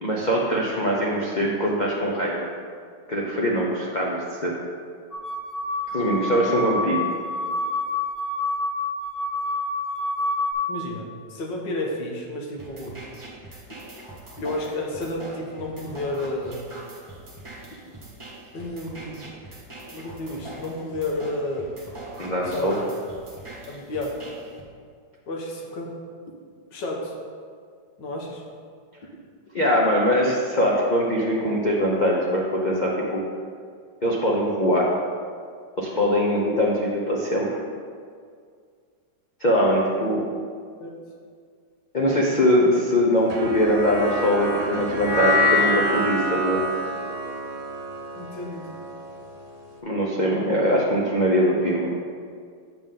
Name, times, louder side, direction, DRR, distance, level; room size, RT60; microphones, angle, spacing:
voice 1, 0.0-2.5 3.1-4.5 5.9-7.0 22.2-22.7 29.5-33.2 34.0-34.9 35.8-37.5 39.4-40.2 41.9-46.6 49.8-51.9, equal, 55° left, -4 dB, 0.5 m, -22 dB
sound 1, 5.1-10.5, left 2 dB, 25° left, 1.1 m, -28 dB
voice 2, 10.7-13.0 14.4-16.6 18.5-19.3 19.9-21.7 22.5-22.9 23.7-24.2 25.3-26.0 26.7-27.2 28.0-28.4 40.8-40.9 48.2-48.9, left 1 dB, 75° left, 0 dB, 1.7 m, -31 dB
sound 2, 12.6-24.6, right 2 dB, 20° right, 1.2 m, -42 dB
sound 3, 43.3-49.7, left 1 dB, 65° right, 1.3 m, -26 dB
8.0 x 7.0 x 3.7 m, 2.1 s
omnidirectional pair, 2.1 m